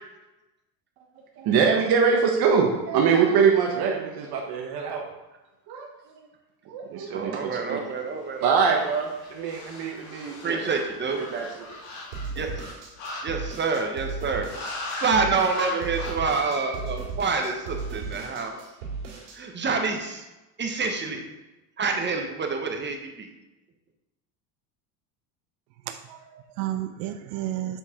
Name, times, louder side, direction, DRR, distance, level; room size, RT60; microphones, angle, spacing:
voice 1, 1.4-5.1 5.7-6.2 6.7-7.8 8.4-10.7 11.3-11.6, right 6 dB, 50° right, 1.0 m, -24 dB
voice 2, 7.1-8.5 10.4-11.2 12.4-12.5 13.2-14.5 15.0-18.6 19.3-20.2 20.6-21.2 21.8-23.3, right 4 dB, 25° right, 0.8 m, -27 dB
sound 1, 8.2-13.8 14.5-15.2 15.4-16.1, left 2 dB, 80° left, 1.9 m, -39 dB
sound 2, 12.1-19.4, right 4 dB, 90° right, 1.9 m, -36 dB
voice 3, 25.9-27.8, right 13 dB, 70° right, 0.5 m, -32 dB
7.2 x 4.2 x 3.6 m
supercardioid pair, 105°, 48 cm